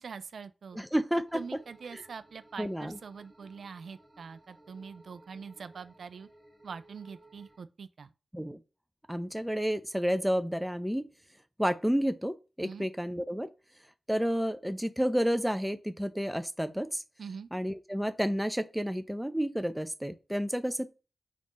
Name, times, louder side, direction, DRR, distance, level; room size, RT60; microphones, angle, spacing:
voice 1, 0.0-0.8 1.3-6.3 6.6-8.1 12.6-12.9 17.2-17.5, right 5 dB, 75° right, 0.4 m, -44 dB
voice 2, 0.7-1.4 2.6-3.0 8.3-8.6 9.1-11.1 11.6-13.5 14.1-17.0 17.5-20.9, equal, 5° right, 0.4 m, -30 dB
sound 1, 1.3-7.6, right 1 dB, 25° right, 1.6 m, -59 dB
3.5 x 2.4 x 4.0 m
cardioid pair, 40°, 0 cm